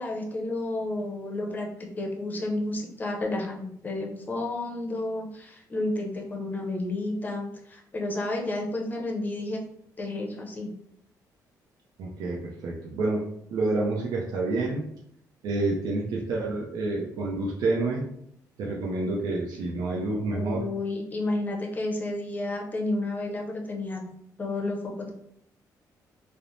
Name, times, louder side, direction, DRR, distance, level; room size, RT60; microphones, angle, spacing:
voice 1, 0.0-9.6 10.0-10.7 20.3-24.0 24.4-25.1, left 2 dB, 25° left, 0 dB, 0.6 m, -31 dB
voice 2, 12.0-13.2 13.5-14.9 15.4-18.1 18.6-20.6, right 2 dB, 75° right, -3 dB, 0.5 m, -28 dB
3.1 x 2.0 x 2.5 m, 0.72 s
cardioid pair, 130°, 7 cm